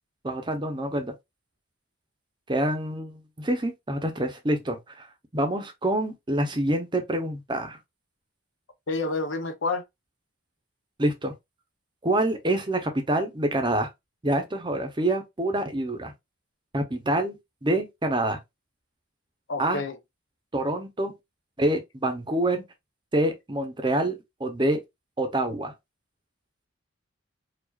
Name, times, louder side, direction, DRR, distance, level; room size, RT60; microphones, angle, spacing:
voice 1, 0.2-1.1 2.5-5.1 5.3-7.8 11.0-11.3 12.0-13.9 14.2-16.1 16.7-18.4 19.6-19.8 20.5-21.1 21.6-22.6 23.1-24.8 25.2-25.7, right 1 dB, 25° right, 0.7 m, -26 dB
voice 2, 8.9-9.8 19.5-20.0, left 3 dB, 75° left, 0.7 m, -28 dB
4.7 x 2.4 x 2.4 m
head